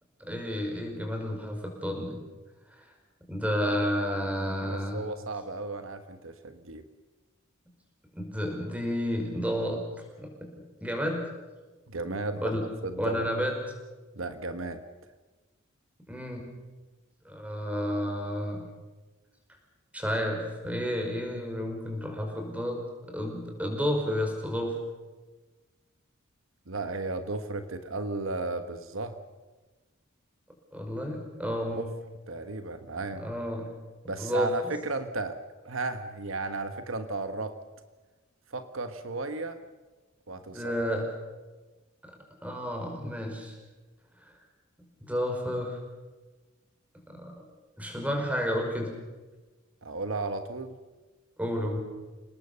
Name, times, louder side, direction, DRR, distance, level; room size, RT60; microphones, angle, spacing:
voice 1, 0.2-2.2 2.8-2.9 3.3-5.0 8.1-9.8 10.2-10.5 10.8-11.3 12.4-12.7 13.0-13.5 16.1-16.4 17.3-18.6 19.9-22.8 23.1-24.8 30.7-31.9 33.2-33.7 34.2-34.5 40.5-41.1 42.0-42.2 42.4-43.6 45.0-45.8 47.1-47.4 47.8-48.9 51.4-51.8, equal, 5° right, 2 dB, 5.3 m, -31 dB
voice 2, 4.6-6.8 11.9-12.5 12.8-13.3 14.1-14.8 26.7-29.2 31.7-31.8 32.3-33.3 34.1-35.4 35.6-37.6 38.5-39.6 40.3-40.7 49.8-50.8, right 3 dB, 75° right, 9 dB, 1.3 m, -34 dB
29.0 x 19.0 x 6.9 m, 1.2 s
head